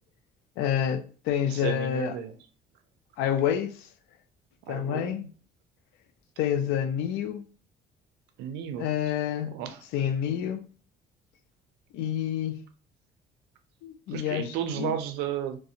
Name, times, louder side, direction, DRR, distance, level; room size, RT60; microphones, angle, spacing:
voice 1, 0.6-2.1 3.2-3.9 4.7-5.3 6.4-7.5 8.8-9.6 9.9-10.6 11.9-12.6 13.8-14.9, left 9 dB, 85° left, 0.4 m, -28 dB
voice 2, 1.5-2.4 4.7-5.3 8.4-8.9 9.4-9.8 14.1-15.6, right 9 dB, 90° right, 0.4 m, -33 dB
2.4 x 2.0 x 2.6 m
cardioid pair, 110°, 17 cm